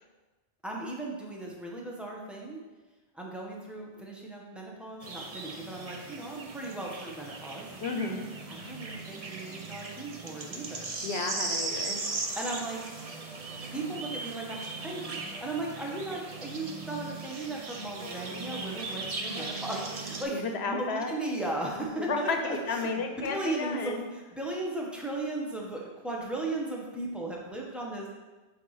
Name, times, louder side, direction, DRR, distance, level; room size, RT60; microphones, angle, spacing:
voice 1, 0.6-2.6 3.1-7.7 8.5-10.9 12.3-12.8 13.7-23.0 23.3-28.1, right 2 dB, ahead, -2 dB, 1.0 m, -36 dB
sound 1, 5.0-20.2, right 3 dB, 40° right, 0.7 m, -38 dB
voice 2, 7.8-8.3 11.0-12.0 20.3-21.1 22.0-24.1, left 4 dB, 80° left, 5 dB, 1.0 m, -32 dB
7.8 x 3.2 x 5.6 m, 1.2 s
omnidirectional pair, 1.1 m